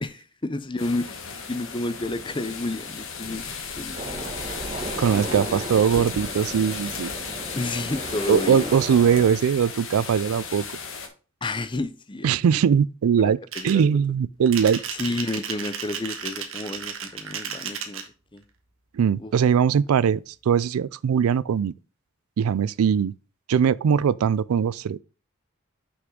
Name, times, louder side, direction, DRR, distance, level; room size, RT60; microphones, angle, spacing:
voice 1, 0.0-3.4 3.7-4.3 5.1-5.6 5.9-6.1 7.6-8.7 11.4-12.4 13.2-13.8 14.9-18.0 18.3-18.4 19.2-19.3, left 2 dB, 20° left, 0.6 m, -31 dB
sound 1, 0.8-11.1, left 5 dB, 65° left, 1.5 m, -35 dB
sound 2, 3.9-9.3, right 2 dB, 30° right, 1.1 m, -35 dB
voice 2, 5.0-7.1 8.3-10.6 12.2-13.4 13.6-14.8 18.9-21.7 22.4-23.1 23.5-25.0, right 7 dB, 90° right, 0.4 m, -21 dB
sound 3, 13.5-13.8 14.5-18.1, right 7 dB, 70° right, 1.3 m, -33 dB
6.1 x 5.9 x 3.7 m
head